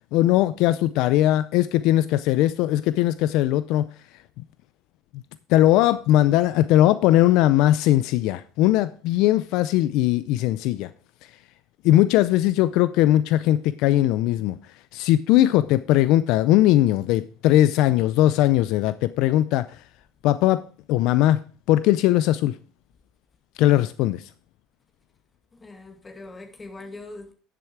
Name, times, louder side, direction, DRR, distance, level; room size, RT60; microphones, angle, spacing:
voice 1, 0.1-3.9 5.5-10.9 11.8-14.6 14.9-19.7 20.2-20.6 20.9-21.4 21.7-22.6 23.6-24.3, left 14 dB, 70° left, 0.4 m, -19 dB
voice 2, 25.5-27.3, left 2 dB, 20° left, 2.1 m, -41 dB
10.5 x 6.9 x 4.6 m
cardioid pair, 125°, 0 cm